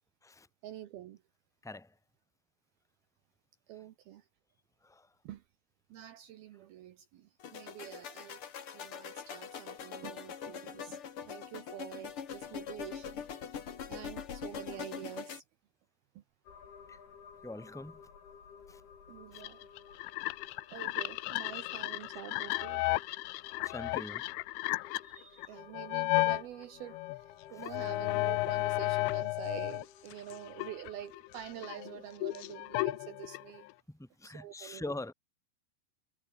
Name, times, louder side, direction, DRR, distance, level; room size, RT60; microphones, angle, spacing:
voice 1, 0.6-1.2 3.7-4.3 5.2-5.4 5.9-8.5 8.7-13.3 13.8-15.4 16.2-16.3 19.1-19.7 20.7-23.0 25.0-33.7 34.2-35.0, right 12 dB, 75° right, 2.3 m, -47 dB
voice 2, 1.6-1.9 4.8-5.1 16.9-17.0 17.4-18.0 18.7-18.8 19.3-19.4 21.5-21.7 23.6-24.3 27.5-27.7 33.9-35.1, left 2 dB, 5° left, 0.4 m, -44 dB
sound 1, 7.4-15.4, left 7 dB, 70° left, 1.3 m, -43 dB
sound 2, 16.4-33.2, left 6 dB, 55° left, 6.1 m, -57 dB
sound 3, 19.4-26.4 26.9-29.8 30.1-33.7, left 21 dB, 85° left, 2.7 m, -34 dB
omnidirectional pair, 5.8 m